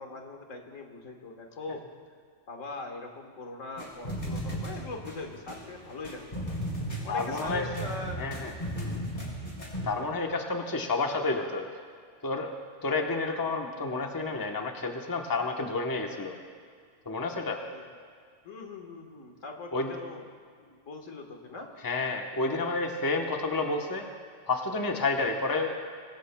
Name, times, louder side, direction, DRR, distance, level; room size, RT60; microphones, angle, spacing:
voice 1, 0.0-1.8 2.5-6.5 7.0-8.3 8.7-9.0 13.3-13.5 17.7-17.8 18.4-20.3 20.6-21.7, left 3 dB, 80° left, 2 dB, 1.8 m, -41 dB
sound 1, 3.8-9.8, equal, 35° left, 3.5 m, -36 dB
voice 2, 7.1-7.7 8.2-8.5 9.8-11.7 12.2-12.5 12.8-16.3 17.1-17.6 19.7-19.9 21.8-24.0 24.5-25.8, left 3 dB, 20° left, 2 dB, 1.0 m, -30 dB
23.5 x 17.0 x 2.3 m, 2.1 s
omnidirectional pair, 1.3 m